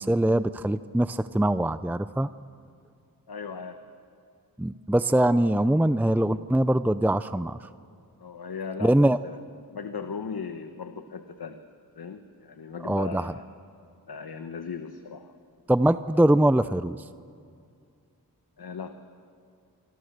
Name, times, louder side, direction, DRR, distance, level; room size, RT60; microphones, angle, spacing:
voice 1, 0.0-2.3 4.6-7.6 8.8-9.2 12.8-13.3 15.7-17.0, right 1 dB, 5° right, 13 dB, 0.5 m, -22 dB
voice 2, 3.3-3.8 8.2-9.4 9.7-11.6 12.0-13.4 14.1-15.3 18.6-18.9, left 5 dB, 85° left, 7 dB, 1.2 m, -37 dB
27.0 x 24.5 x 6.7 m, 2.3 s
wide cardioid pair, 55°, 37 cm